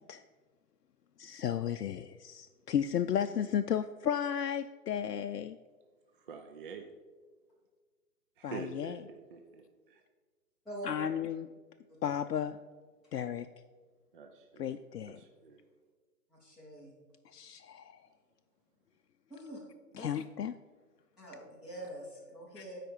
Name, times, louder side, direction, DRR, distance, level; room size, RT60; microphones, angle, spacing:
voice 1, 1.2-5.6 8.4-9.0 10.8-11.5 12.0-12.6 13.1-13.5 14.6-15.2 17.3-18.0 20.0-20.5 22.6-22.7, left 9 dB, 75° left, 8 dB, 0.5 m, -34 dB
voice 2, 6.1-6.9 8.4-10.0 14.1-14.8 15.1-15.6, right 5 dB, 35° right, 4 dB, 0.5 m, -46 dB
voice 3, 16.3-16.9 19.3-19.6 19.9-20.1 21.2-22.8, right 1 dB, ahead, -10 dB, 0.8 m, -45 dB
12.0 x 5.0 x 4.7 m, 1.4 s
figure-of-eight pair, 135°, 49 cm